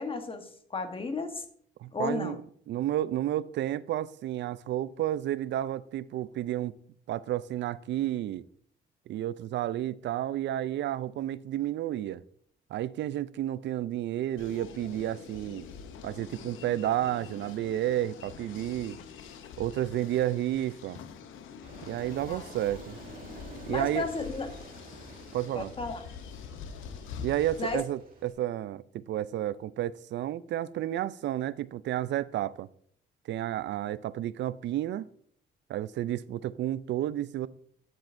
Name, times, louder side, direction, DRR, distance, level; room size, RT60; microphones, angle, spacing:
voice 1, 0.0-1.4 1.9-2.4 22.3-22.5 23.7-24.5 25.5-26.0 27.6-27.8, left 3 dB, 25° left, 1.1 m, -33 dB
voice 2, 1.8-2.4 2.7-6.7 7.1-8.4 9.1-12.2 12.7-15.7 16.0-19.0 19.6-21.0 21.8-23.0 23.7-24.1 25.3-25.7 27.2-32.7 33.3-35.1 35.7-37.5, right 12 dB, 65° right, 0.4 m, -31 dB
sound 1, 14.4-27.8, left 6 dB, 80° left, 0.8 m, -45 dB
Aircraft, 21.6-28.3, right 3 dB, 45° right, 2.1 m, -51 dB
9.2 x 7.6 x 2.6 m
cardioid pair, 90°, 20 cm